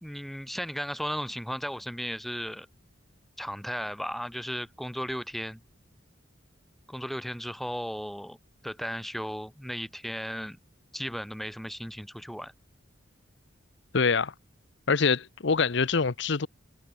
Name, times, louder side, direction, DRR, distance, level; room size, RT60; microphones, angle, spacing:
voice 1, 0.0-2.7 3.4-5.6 6.9-8.4 8.6-10.6 10.9-12.5, equal, ahead, 0.9 m, -35 dB
voice 2, 13.9-14.3 14.9-16.5, left 5 dB, 60° left, 0.8 m, -25 dB
head